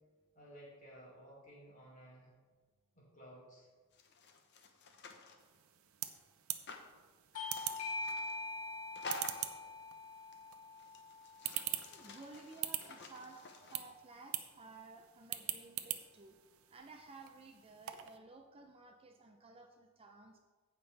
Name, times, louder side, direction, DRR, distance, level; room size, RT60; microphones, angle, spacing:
voice 1, 0.3-2.3 2.9-3.7, equal, 35° left, -5 dB, 3.1 m, -56 dB
sound 1, 3.9-5.4 6.7-6.9 7.5-8.4 8.9-9.6 10.3-10.4 10.8-13.8, left 3 dB, 50° left, 0.9 m, -50 dB
sound 2, 5.4-18.2, right 13 dB, 65° right, 0.6 m, -45 dB
Bell / Doorbell, 7.3-12.5, left 3 dB, 80° left, 1.1 m, -44 dB
voice 2, 11.9-16.4 16.7-20.4, right 3 dB, 25° right, 3 dB, 0.5 m, -55 dB
15.5 x 5.6 x 3.4 m, 1.4 s
head